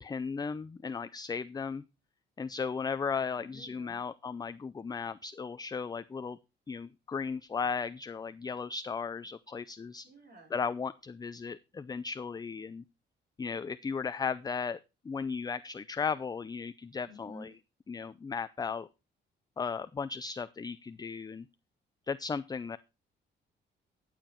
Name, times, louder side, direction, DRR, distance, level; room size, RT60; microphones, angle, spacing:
voice 1, 0.0-1.8 2.4-6.4 6.7-10.1 10.5-12.8 13.4-14.8 15.0-17.5 17.9-18.9 19.6-21.5 22.1-22.8, left 5 dB, 20° left, 14 dB, 0.4 m, -36 dB
voice 2, 3.4-4.0 10.0-10.5 17.0-17.5, equal, 55° right, 3 dB, 4.0 m, -51 dB
11.0 x 7.3 x 4.5 m, 0.27 s
cardioid pair, 90°, 20 cm